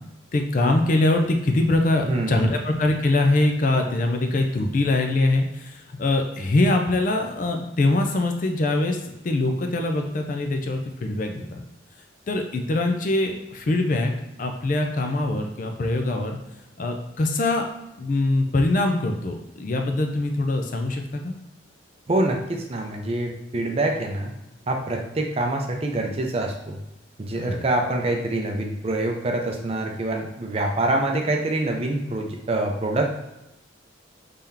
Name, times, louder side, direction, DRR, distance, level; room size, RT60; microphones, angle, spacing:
voice 1, 0.3-9.0 9.2-11.6 12.3-14.1 14.4-16.4 16.8-17.7 18.0-21.3 27.4-27.6, left 2 dB, 45° left, 4 dB, 0.4 m, -23 dB
voice 2, 2.1-2.6 22.1-24.3 24.7-26.8 27.2-33.2, right 2 dB, 30° right, 2 dB, 0.5 m, -25 dB
3.4 x 2.8 x 3.7 m, 0.90 s
head